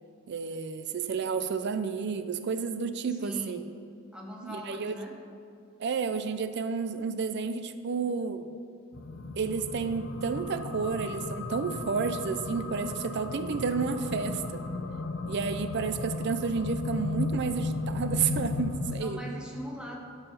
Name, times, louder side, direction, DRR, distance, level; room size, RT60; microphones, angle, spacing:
voice 1, 0.3-3.6 4.4-4.9 5.8-8.5 9.4-14.6 15.3-19.2, right 5 dB, 55° right, 10 dB, 0.4 m, -31 dB
voice 2, 3.1-3.6 4.1-5.2 19.0-19.9, equal, 5° right, -2 dB, 1.3 m, -41 dB
sound 1, 8.9-19.0, left 3 dB, 65° left, 0.7 m, -35 dB
11.0 x 5.6 x 5.6 m, 2.5 s
head